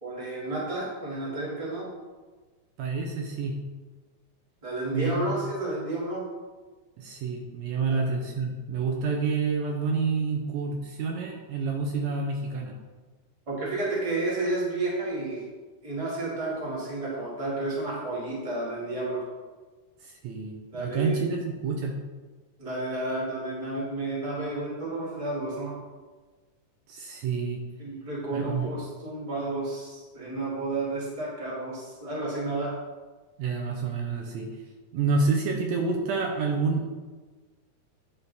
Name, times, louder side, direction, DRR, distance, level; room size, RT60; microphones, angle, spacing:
voice 1, 0.0-1.9 4.6-6.2 7.9-8.1 13.5-15.4 15.8-19.2 20.7-21.2 22.6-25.7 27.8-32.7, right 2 dB, 15° right, -6 dB, 1.5 m, -31 dB
voice 2, 2.8-3.6 4.9-5.3 7.0-12.7 20.0-21.9 26.9-27.6 28.3-28.7 33.4-34.5 34.9-36.9, right 4 dB, 75° right, 1 dB, 1.9 m, -28 dB
9.9 x 3.7 x 4.1 m, 1.3 s
omnidirectional pair, 3.4 m